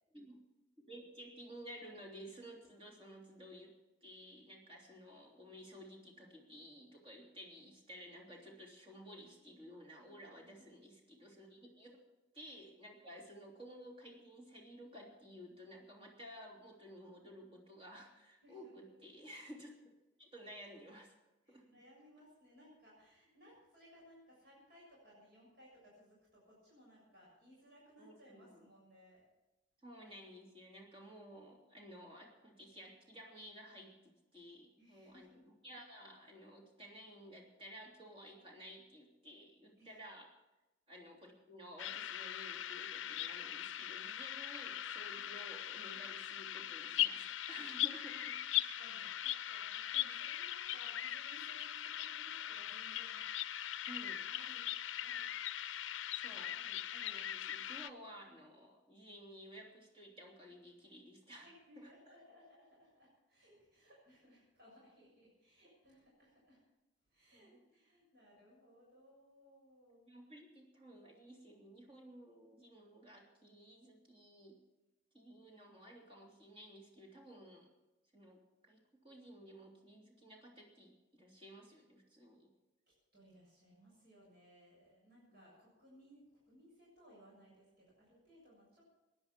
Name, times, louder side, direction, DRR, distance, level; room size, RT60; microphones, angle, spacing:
voice 1, 0.9-3.7 4.0-12.0 12.3-19.8 20.2-21.1 21.5-21.6 28.0-28.7 29.8-35.3 35.6-40.3 40.9-48.4 53.9-54.2 56.1-61.5 61.8-61.9 67.3-67.6 70.1-74.6 75.1-77.7 78.1-82.5 85.3-85.4, equal, 30° right, 0 dB, 3.1 m, -54 dB
voice 2, 18.4-18.9 21.4-29.2 34.8-35.4 39.8-40.0 48.5-53.8 54.3-54.6 55.0-55.3 61.4-66.6 67.1-70.1 83.1-88.9, equal, 55° right, -5 dB, 7.3 m, -63 dB
sound 1, 41.8-57.9, left 12 dB, 80° left, 0.5 m, -40 dB
17.0 x 11.0 x 6.1 m, 1.0 s
head